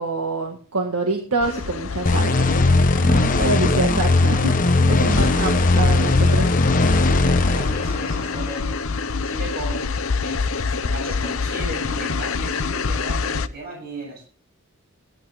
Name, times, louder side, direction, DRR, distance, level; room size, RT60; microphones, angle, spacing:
voice 1, 0.0-6.5, right 2 dB, 85° right, 2 dB, 1.9 m, -26 dB
sound 1, 1.4-13.5, left 4 dB, 70° left, 0.7 m, -27 dB
voice 2, 1.9-2.3 5.0-5.5 7.0-8.8 9.2-14.3, right 1 dB, 45° right, -1 dB, 7.3 m, -36 dB
sound 2, 2.1-8.5, left 2 dB, 35° left, 1.0 m, -19 dB
16.0 x 11.5 x 3.6 m, 0.40 s
head